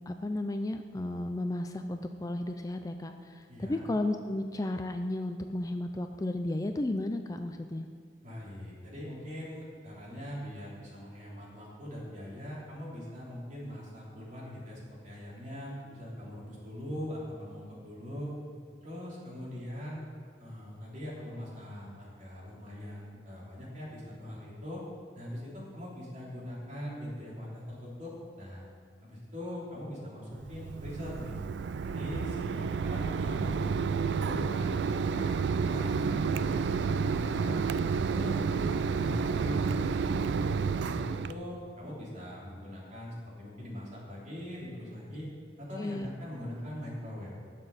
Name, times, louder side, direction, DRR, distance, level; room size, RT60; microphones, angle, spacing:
voice 1, 0.1-7.9 45.8-46.1, left 1 dB, 20° left, 6 dB, 0.4 m, -33 dB
voice 2, 3.5-3.9 8.2-18.3 18.8-20.0 20.4-24.8 25.1-28.7 29.0-31.4 31.8-33.7 34.2-37.6 37.9-40.2 40.6-45.3 45.6-47.3, equal, 45° right, -5 dB, 3.5 m, -41 dB
Mechanisms, 30.4-41.3, right 5 dB, 65° right, 0.3 m, -30 dB
19.0 x 6.9 x 4.2 m, 2.1 s
head